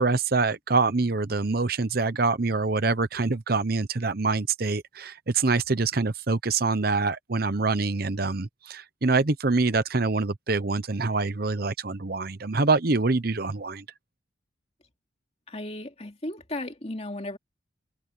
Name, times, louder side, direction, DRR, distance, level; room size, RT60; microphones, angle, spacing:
voice 1, 0.0-13.8, right 3 dB, 50° right, 0.8 m, -25 dB
voice 2, 15.5-17.4, left 1 dB, 30° left, 2.7 m, -35 dB
head